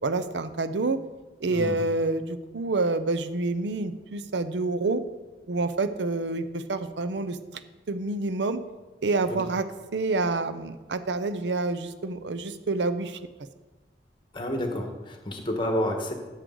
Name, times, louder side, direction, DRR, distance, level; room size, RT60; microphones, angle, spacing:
voice 1, 0.0-1.0 1.4-5.0 5.5-7.4 7.9-8.6 9.0-9.6 9.9-13.2, right 3 dB, 85° right, 11 dB, 0.6 m, -27 dB
voice 2, 1.4-1.8 9.3-9.4 14.3-16.1, left 1 dB, 25° left, 3 dB, 1.2 m, -29 dB
13.0 x 6.5 x 3.8 m, 1.2 s
head